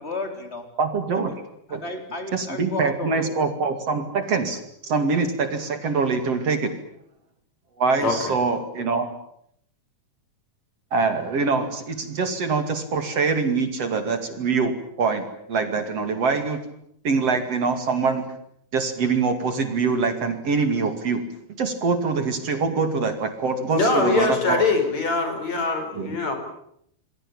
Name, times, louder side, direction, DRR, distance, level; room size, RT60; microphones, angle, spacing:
voice 1, 0.0-0.7 1.1-1.4 1.7-3.4, left 3 dB, 20° left, 5 dB, 4.4 m, -33 dB
voice 2, 0.8-1.3 1.7-1.8 2.3-6.7 7.8-9.1 10.9-16.6 17.0-18.2 18.7-21.3 21.6-24.6 25.9-26.2, right 4 dB, 50° right, 8 dB, 3.4 m, -24 dB
voice 3, 8.0-8.3 23.7-26.4, left 3 dB, 60° left, 5 dB, 6.1 m, -23 dB
28.5 x 21.5 x 8.8 m, 0.71 s
omnidirectional pair, 3.6 m